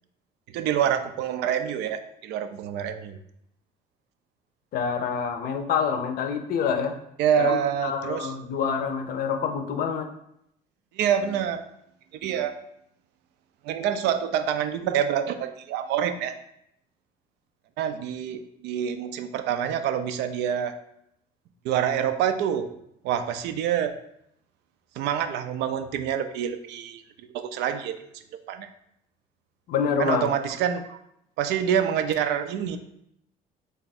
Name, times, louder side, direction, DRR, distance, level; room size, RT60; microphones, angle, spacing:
voice 1, 0.5-3.2 7.2-8.3 10.9-11.6 12.1-12.5 13.6-16.3 17.8-20.7 21.6-22.7 23.0-23.9 25.0-27.0 27.3-28.0 28.3-28.7 30.0-31.0 31.4-32.8, right 9 dB, 85° right, 9 dB, 0.4 m, -26 dB
voice 2, 4.7-6.9 7.4-10.1 29.7-30.3, left 6 dB, 60° left, 6 dB, 0.5 m, -27 dB
3.4 x 2.4 x 4.1 m, 0.77 s
cardioid pair, 110°, 17 cm